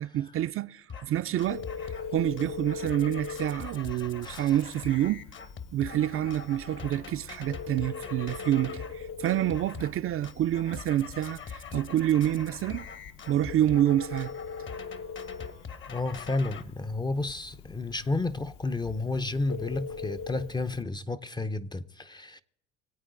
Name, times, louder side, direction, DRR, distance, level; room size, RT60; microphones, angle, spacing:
voice 1, 0.0-5.2 5.7-12.9 13.3-14.3, right 12 dB, 45° right, 0.5 m, -28 dB
sound 1, 0.9-1.1 1.4-2.1 2.4-9.0 9.3-10.0 10.2-16.6, left 6 dB, 35° left, 1.1 m, -43 dB
Telephone, 1.4-20.8, left 5 dB, 65° left, 1.5 m, -42 dB
voice 2, 3.9-4.5 15.9-22.4, left 2 dB, 15° left, 0.6 m, -32 dB
25.0 x 8.7 x 3.8 m
supercardioid pair, 85°, 32 cm